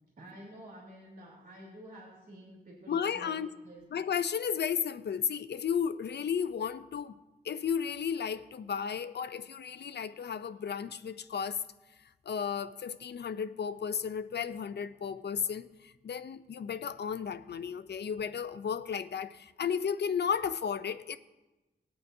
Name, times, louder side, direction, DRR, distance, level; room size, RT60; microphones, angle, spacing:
voice 1, 0.2-4.1, right 1 dB, 55° right, 3.0 m, -50 dB
voice 2, 2.9-3.5 3.9-7.2 7.4-11.6 12.3-21.2, left 7 dB, 75° left, 0.5 m, -33 dB
19.5 x 8.9 x 2.7 m
wide cardioid pair, 100°, 18 cm